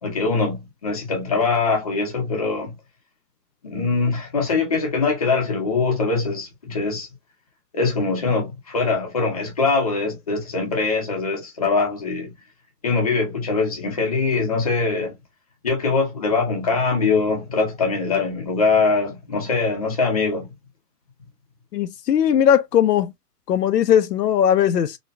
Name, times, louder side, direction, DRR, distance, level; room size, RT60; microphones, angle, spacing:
voice 1, 0.0-2.7 3.6-7.1 7.7-12.3 12.8-15.1 15.6-20.5, left 4 dB, 25° left, 0.7 m, -22 dB
voice 2, 21.7-23.1 23.5-25.0, left 9 dB, 75° left, 0.6 m, -18 dB
4.0 x 2.3 x 2.5 m
hypercardioid pair, 175°, 48 cm